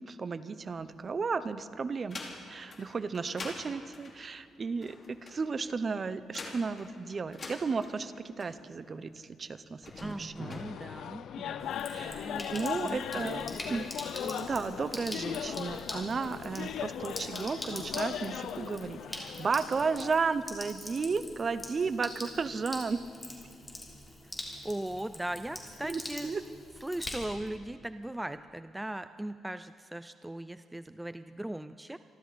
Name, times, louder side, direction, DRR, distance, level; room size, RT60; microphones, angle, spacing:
voice 1, 0.1-2.2 2.5-10.6 11.9-13.4 13.7-13.9 14.2-23.0 25.8-26.4, right 4 dB, 40° right, 14 dB, 0.8 m, -34 dB
sound 1, 0.6-1.5 1.9-8.9 9.7-10.6, left 3 dB, 45° left, 2.6 m, -46 dB
voice 2, 10.0-13.9 24.6-26.3 26.8-32.0, right 1 dB, 10° right, 12 dB, 0.4 m, -39 dB
sound 2, 10.4-20.1, left 9 dB, 75° left, 0.5 m, -38 dB
Sink (filling or washing), 11.6-27.5, left 1 dB, 15° left, 3.4 m, -44 dB
26.5 x 13.0 x 4.2 m, 2.4 s
cardioid pair, 80°, 0 cm